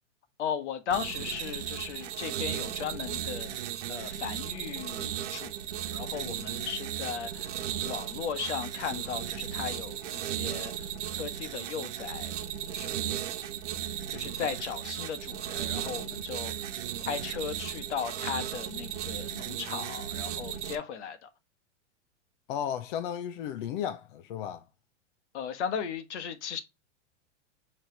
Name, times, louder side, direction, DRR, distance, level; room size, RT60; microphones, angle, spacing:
voice 1, 0.4-3.6 3.9-7.5 7.8-10.9 11.1-12.3 12.7-13.2 14.1-16.5 17.0-21.3 25.3-26.6, left 7 dB, 70° left, 1.3 m, -36 dB
sound 1, 0.9-20.8, right 10 dB, 70° right, 1.1 m, -36 dB
voice 2, 22.5-24.7, left 9 dB, 45° left, 0.6 m, -34 dB
8.6 x 3.3 x 3.3 m
supercardioid pair, 150°, 36 cm